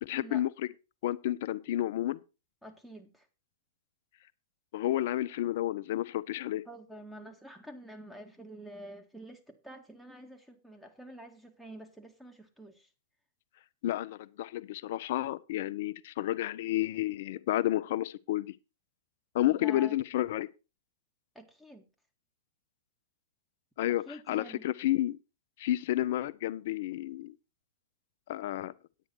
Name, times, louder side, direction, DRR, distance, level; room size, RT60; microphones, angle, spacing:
voice 1, 0.0-0.5 1.0-2.2 4.7-6.6 13.8-18.5 19.3-20.5 23.8-25.2 25.6-27.3 28.3-28.7, left 14 dB, 60° left, 0.7 m, -31 dB
voice 2, 2.6-3.3 6.7-12.9 19.5-20.0 21.4-21.9 23.9-24.6, equal, ahead, 2.0 m, -48 dB
9.7 x 9.1 x 4.5 m
hypercardioid pair, 110°, 0 cm